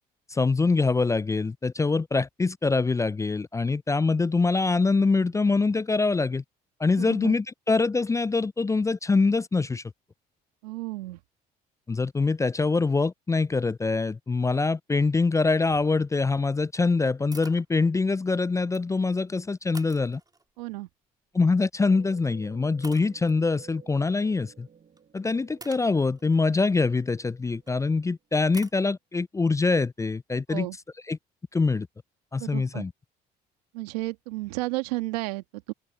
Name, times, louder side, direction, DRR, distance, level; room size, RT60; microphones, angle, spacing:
voice 1, 0.3-6.4 6.8-9.8 11.9-20.2 21.3-24.7 25.1-30.7 31.1-31.2 31.5-31.9 32.3-32.9, left 3 dB, 15° left, 0.4 m, -24 dB
voice 2, 7.0-7.3 10.6-11.2 20.6-20.9 30.5-30.8 32.4-32.8 33.7-35.7, right 21 dB, 90° right, 1.7 m, -32 dB
sound 1, 17.3-17.7 18.5-19.1 19.7-20.6 21.9-22.2 22.8-23.4 25.0-25.1 25.6-27.7 28.5-28.8, right 3 dB, 20° right, 3.4 m, -47 dB
sound 2, 21.8-28.0, right 7 dB, 45° right, 6.5 m, -54 dB
open air
hypercardioid pair, 65°, 20 cm